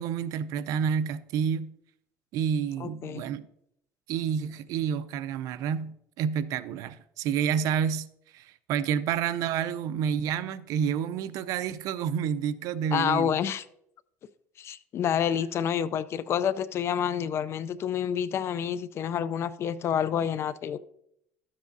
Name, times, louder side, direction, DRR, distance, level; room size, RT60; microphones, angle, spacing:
voice 1, 0.0-1.7 2.3-3.5 4.1-8.1 8.3-13.3, right 8 dB, 70° right, 0.5 m, -29 dB
voice 2, 2.8-3.2 12.9-13.6 14.6-20.8, left 8 dB, 45° left, 0.4 m, -28 dB
12.5 x 7.4 x 2.6 m
cardioid pair, 120°, 6 cm